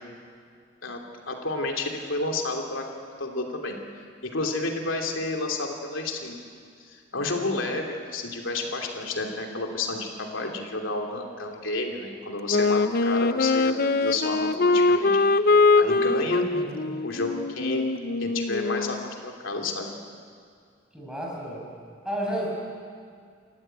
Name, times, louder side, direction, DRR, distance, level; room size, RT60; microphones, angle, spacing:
voice 1, 0.8-2.9 3.2-6.4 6.8-15.1 15.8-16.4 17.0-17.8 18.2-19.9, left 2 dB, 90° left, 2 dB, 3.1 m, -31 dB
Wind instrument woodwind instrument, 12.5-19.1, left 3 dB, 50° left, 0.6 m, -22 dB
voice 2, 16.5-16.9 20.9-21.7 22.0-22.5, equal, 5° right, -3 dB, 5.6 m, -32 dB
29.0 x 14.0 x 9.2 m, 2.2 s
head